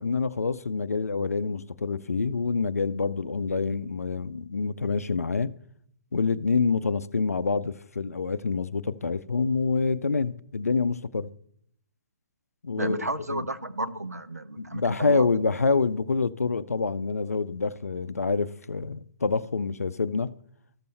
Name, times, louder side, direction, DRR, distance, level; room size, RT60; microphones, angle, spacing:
voice 1, 0.0-5.5 6.1-11.3 12.6-13.0 13.3-13.5 14.6-20.3, left 4 dB, 75° left, 0.5 m, -27 dB
voice 2, 12.8-15.3, right 1 dB, 90° right, 0.7 m, -32 dB
14.0 x 6.7 x 3.3 m
figure-of-eight pair, 130°, 8 cm